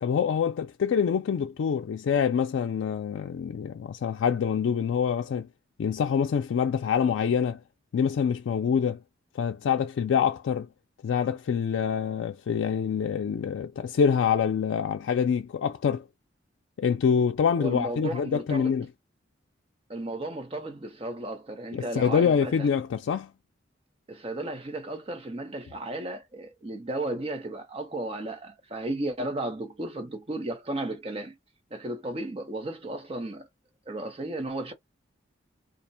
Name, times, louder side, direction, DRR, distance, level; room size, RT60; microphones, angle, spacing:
voice 1, 0.0-5.5 5.8-7.6 7.9-9.0 9.3-10.7 11.0-16.1 16.8-18.9 21.7-23.3, left 7 dB, 80° left, 0.3 m, -26 dB
voice 2, 17.6-18.8 19.9-22.7 24.1-31.4 31.7-33.5 33.9-34.7, right 1 dB, 30° right, 0.7 m, -34 dB
2.4 x 2.1 x 2.6 m
head